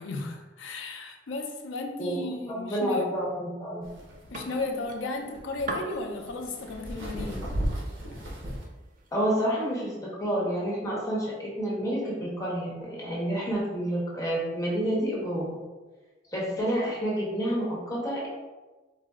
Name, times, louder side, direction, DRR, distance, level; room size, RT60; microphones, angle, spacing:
voice 1, 0.0-3.1 4.3-7.5, left 2 dB, 75° left, 3 dB, 0.5 m, -34 dB
voice 2, 2.0-3.8 9.1-15.6 16.3-18.3, equal, 15° left, -5 dB, 1.0 m, -29 dB
sound 1, 3.8-8.6, equal, 70° right, 0.9 m, -35 dB
sound 2, 3.9-9.8, right 2 dB, 45° right, 0.4 m, -43 dB
4.1 x 2.0 x 3.5 m, 1.2 s
head